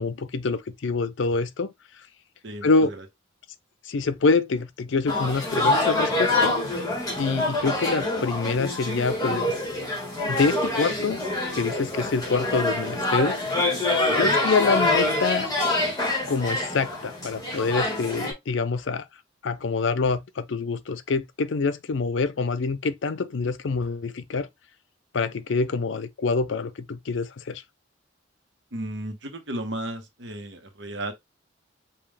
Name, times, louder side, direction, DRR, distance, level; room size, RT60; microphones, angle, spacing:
voice 1, 0.0-1.7 2.6-2.9 3.9-6.5 7.2-9.5 10.3-11.2 11.5-13.4 14.2-15.5 16.3-19.0 19.4-24.5 25.1-27.6, left 4 dB, 75° left, 0.5 m, -26 dB
voice 2, 2.4-3.0 14.1-14.4 28.7-31.1, right 1 dB, 65° right, 1.0 m, -34 dB
sound 1, 5.1-18.3, left 2 dB, 20° left, 1.9 m, -26 dB
5.3 x 2.4 x 3.4 m
head